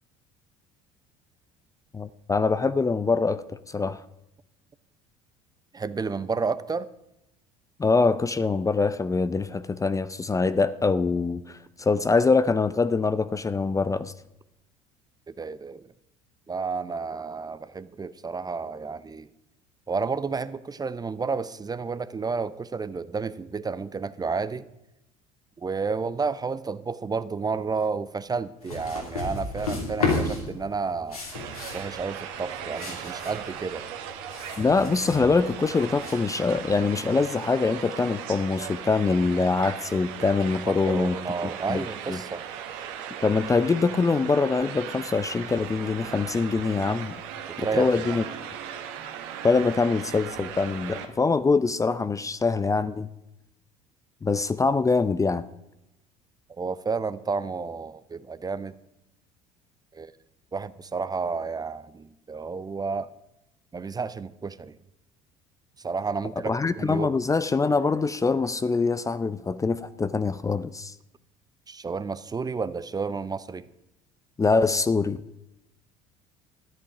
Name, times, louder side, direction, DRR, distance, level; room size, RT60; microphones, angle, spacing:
voice 1, 1.9-4.0 7.8-14.1 34.6-41.2 41.7-42.2 43.2-47.2 47.6-48.2 49.4-53.1 54.2-55.4 66.5-70.9 74.4-75.2, left 4 dB, 20° left, 14 dB, 0.6 m, -24 dB
voice 2, 5.7-6.9 15.3-15.9 16.5-19.3 19.9-24.7 25.6-31.2 31.7-33.9 40.7-42.5 47.6-48.2 56.5-58.7 59.9-60.1 60.5-63.1 63.7-64.8 65.8-67.1 71.7-73.7, right 4 dB, 20° right, 15 dB, 0.7 m, -31 dB
sound 1, 28.6-36.1, left 3 dB, 90° left, 2.9 m, -32 dB
sound 2, 31.3-51.1, right 9 dB, 65° right, 1.6 m, -38 dB
13.5 x 11.0 x 5.0 m, 0.85 s
hypercardioid pair, 65°, 18 cm